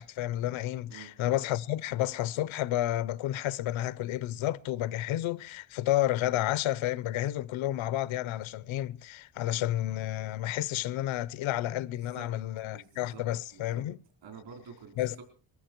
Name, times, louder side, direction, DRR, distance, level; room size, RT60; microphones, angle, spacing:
voice 1, 0.0-14.0 15.0-15.2, left 14 dB, 90° left, 0.8 m, -31 dB
voice 2, 12.7-13.2 13.5-13.8 14.2-15.2, right 5 dB, 70° right, 4.3 m, -48 dB
21.5 x 14.5 x 4.5 m
cardioid pair, 125°, 45 cm